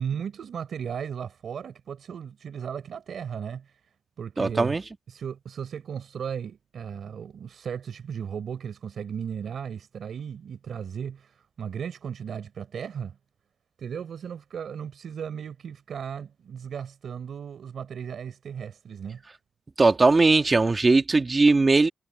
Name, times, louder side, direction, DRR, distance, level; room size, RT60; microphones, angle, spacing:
voice 1, 0.0-3.7 4.2-4.8 5.1-13.2 13.8-19.2, right 7 dB, 80° right, 3.9 m, -36 dB
voice 2, 4.4-4.8 19.8-21.9, right 3 dB, 30° right, 1.9 m, -19 dB
wide cardioid pair, 105°, 0 cm